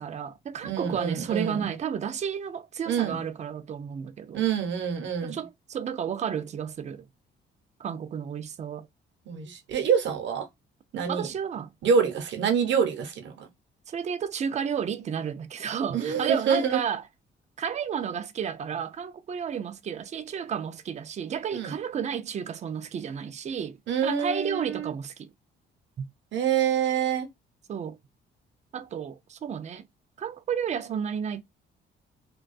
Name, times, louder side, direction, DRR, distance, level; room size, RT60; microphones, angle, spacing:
voice 1, 0.0-4.5 5.2-7.0 7.8-8.9 11.1-11.7 13.9-17.0 17.6-23.8 24.0-25.3 26.0-26.1 27.7-28.0 28.7-29.8 30.2-31.4, right 7 dB, 35° right, 0.4 m, -32 dB
voice 2, 0.6-1.7 2.9-3.2 4.3-5.4 9.3-10.5 10.9-11.3 11.8-13.5 15.9-16.8 21.5-21.7 23.9-24.9 26.3-27.3, right 7 dB, 65° right, 0.7 m, -26 dB
2.3 x 2.2 x 2.5 m
cardioid pair, 90°, 20 cm